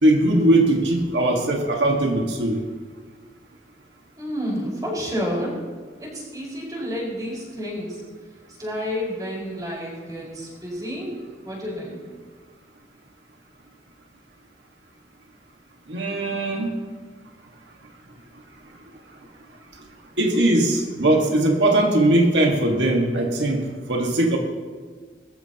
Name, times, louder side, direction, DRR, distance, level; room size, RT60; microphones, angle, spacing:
voice 1, 0.0-2.6 15.9-16.7 20.2-24.4, right 1 dB, 90° right, 1 dB, 1.7 m, -20 dB
voice 2, 4.2-5.5 6.0-8.0 8.6-11.2 11.4-12.0, equal, 20° right, -4 dB, 5.2 m, -30 dB
21.5 x 14.0 x 3.0 m, 1.5 s
head